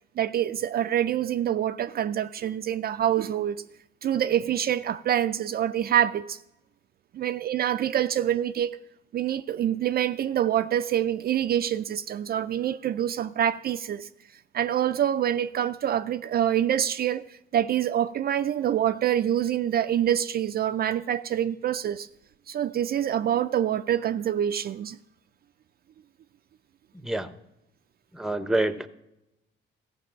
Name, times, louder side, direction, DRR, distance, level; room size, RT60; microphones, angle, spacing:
voice 1, 0.2-3.6 4.0-6.4 7.1-8.8 9.1-14.1 14.5-17.3 17.5-22.1 22.5-25.0, right 10 dB, 50° right, 0.4 m, -26 dB
voice 2, 26.9-27.3 28.1-28.9, right 2 dB, ahead, 0.7 m, -27 dB
14.5 x 5.4 x 7.3 m
cardioid pair, 90°, 20 cm